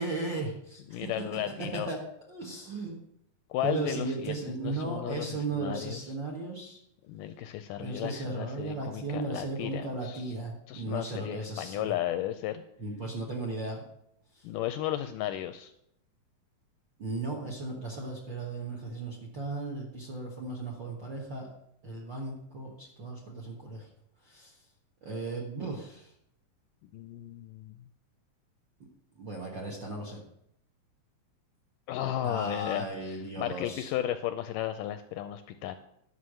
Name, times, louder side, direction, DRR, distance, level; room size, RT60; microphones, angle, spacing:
voice 1, 0.0-1.1 1.9-2.0 2.3-3.0 3.6-6.8 7.8-11.9 12.8-13.8 14.3-14.4 17.0-21.5 21.8-23.9 24.2-24.5 25.0-26.1 29.2-30.2 32.2-33.9, right 3 dB, 50° right, -1 dB, 1.4 m, -36 dB
voice 2, 0.9-1.9 3.5-6.0 7.1-10.3 10.7-12.6 14.4-15.7 26.9-27.7 31.9-35.7, left 12 dB, 80° left, 9 dB, 1.9 m, -34 dB
11.5 x 5.7 x 7.6 m, 0.75 s
omnidirectional pair, 4.2 m